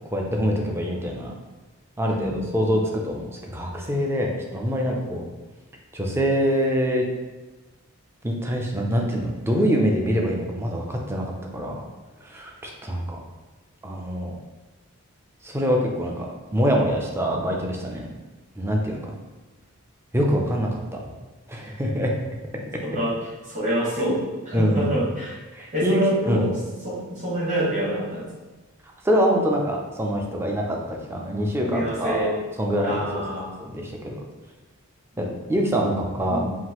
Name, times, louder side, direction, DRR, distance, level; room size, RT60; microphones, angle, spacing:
voice 1, 0.1-1.3 2.0-5.2 5.9-7.1 8.2-11.3 11.5-11.8 12.2-13.2 13.8-14.4 15.4-18.1 18.6-19.1 20.1-21.0 21.5-22.1 24.0-24.2 24.5-24.9 25.5-26.5 29.0-32.3 32.6-33.2 33.7-34.2 35.2-36.4, equal, 10° right, 0 dB, 0.4 m, -24 dB
voice 2, 2.0-2.5 22.8-23.1 23.5-26.5 26.8-28.3 31.6-32.4 32.8-33.5 36.3-36.6, equal, 35° right, -6 dB, 1.4 m, -26 dB
5.8 x 2.6 x 2.9 m, 1.2 s
head